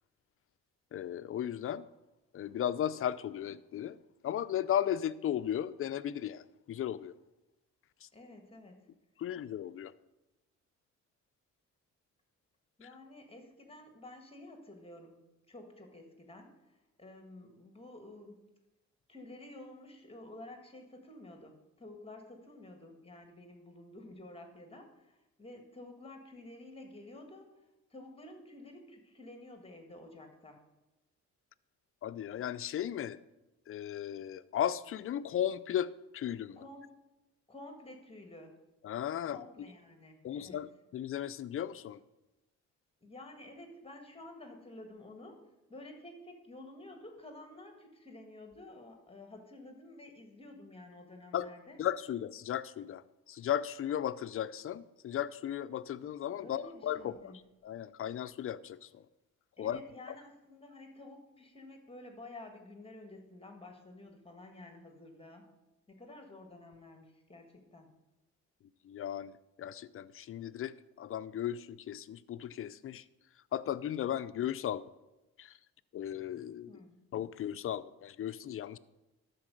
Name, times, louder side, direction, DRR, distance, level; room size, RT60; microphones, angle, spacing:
voice 1, 0.9-1.8 2.3-4.0 4.2-7.1 8.0-8.1 9.2-9.9 12.8-12.9 32.0-33.2 33.7-36.6 38.8-39.4 40.2-42.0 51.3-51.5 51.8-59.0 59.6-59.8 68.8-69.3 69.6-73.0 73.5-74.8 75.4-75.5 75.9-76.7 77.1-78.8, left 10 dB, 45° left, 14 dB, 0.5 m, -36 dB
voice 2, 8.1-8.9 12.8-15.2 15.5-18.4 19.1-27.6 27.9-30.6 36.6-36.9 37.5-38.6 39.3-40.6 43.0-45.4 45.7-51.8 56.4-57.4 59.6-65.5 65.9-67.9 76.7-77.0, left 2 dB, 20° left, 4 dB, 1.6 m, -51 dB
12.0 x 4.6 x 6.3 m, 0.99 s
cardioid pair, 90°, 30 cm